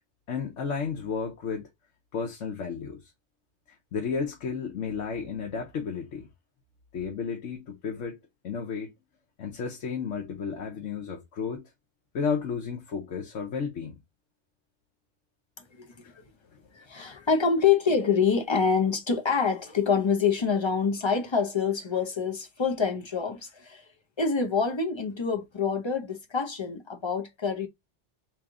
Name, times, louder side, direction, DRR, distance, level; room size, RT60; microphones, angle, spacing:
voice 1, 0.3-1.7 2.1-3.0 3.9-6.3 6.9-8.2 8.4-8.9 9.4-11.6 12.1-14.0 16.0-16.1 17.0-17.2, left 6 dB, 80° left, 1.2 m, -32 dB
voice 2, 15.6-16.1 16.7-23.9 24.2-27.7, left 5 dB, 35° left, 0.5 m, -26 dB
3.1 x 3.1 x 3.5 m
omnidirectional pair, 1.2 m